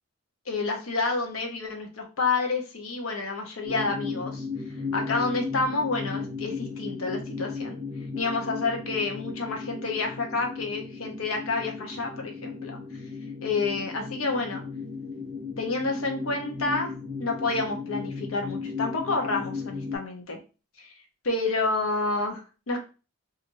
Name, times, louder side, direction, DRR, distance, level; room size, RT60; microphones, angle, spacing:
voice 1, 0.5-4.4 4.9-7.8 8.1-12.8 13.4-14.6 15.6-16.9 17.2-20.4 20.8-20.9 21.2-22.8, left 3 dB, 85° left, 2 dB, 0.8 m, -29 dB
sound 1, 3.7-20.0, left 4 dB, 25° right, 0.8 m, -35 dB
3.0 x 2.5 x 2.5 m, 0.33 s
head